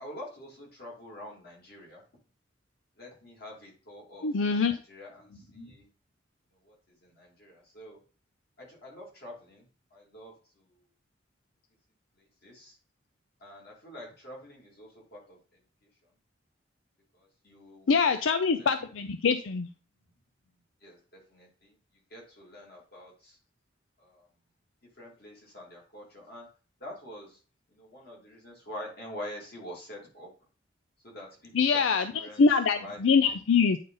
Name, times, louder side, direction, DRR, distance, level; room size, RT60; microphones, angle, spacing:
voice 1, 0.0-2.0 3.0-5.9 6.6-6.7 7.0-8.0 8.6-9.6 9.9-10.4 12.4-12.8 13.4-15.4 17.1-18.1 18.4-18.7 20.8-21.7 22.1-23.4 24.0-24.3 25.0-26.5 26.8-27.4 27.7-30.3 31.0-32.4 32.8-33.3, left 1 dB, 55° left, -3 dB, 2.8 m, -46 dB
voice 2, 4.2-4.8 17.9-19.7 31.5-32.1 32.4-33.8, left 5 dB, 85° left, 9 dB, 0.5 m, -24 dB
9.3 x 3.9 x 3.9 m, 0.38 s
head